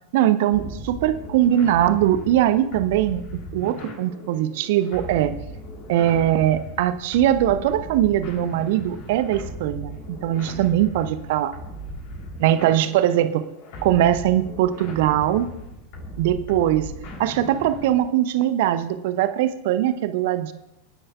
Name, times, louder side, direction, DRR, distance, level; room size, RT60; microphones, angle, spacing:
voice 1, 0.1-3.2 3.5-5.3 5.9-11.6 12.4-13.4 13.8-15.5 16.2-16.9 17.2-20.5, right 12 dB, 50° right, 12 dB, 0.8 m, -21 dB
sound 1, 0.5-18.1, equal, 45° left, 3.4 m, -38 dB
27.0 x 9.9 x 2.4 m, 0.88 s
figure-of-eight pair, 90°, 0 cm